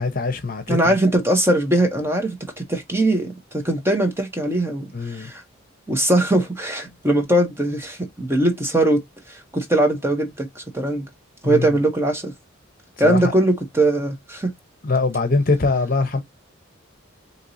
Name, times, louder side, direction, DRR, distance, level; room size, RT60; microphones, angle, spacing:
voice 1, 0.0-0.9 4.9-5.3 11.4-11.8 13.0-13.3 14.8-16.2, left 3 dB, 45° left, 0.8 m, -22 dB
voice 2, 0.7-5.4 5.9-9.0 9.3-11.1 11.4-12.3 13.0-14.5, right 1 dB, 10° right, 0.8 m, -21 dB
4.6 x 2.8 x 2.6 m
head